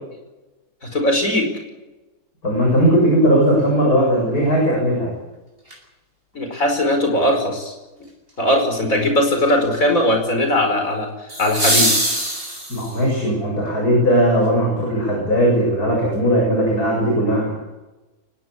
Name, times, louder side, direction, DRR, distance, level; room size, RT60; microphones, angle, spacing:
voice 1, 0.9-1.5 6.3-7.7 8.4-11.1 11.4-11.9, left 1 dB, 60° left, 5 dB, 5.5 m, -19 dB
voice 2, 2.4-5.1 12.7-17.5, equal, 75° left, -1 dB, 8.0 m, -18 dB
sound 1, 5.7-5.8 11.3-13.1 15.3-15.4, right 1 dB, 35° right, 7.8 m, -21 dB
23.5 x 19.5 x 8.5 m, 1.1 s
omnidirectional pair, 1.6 m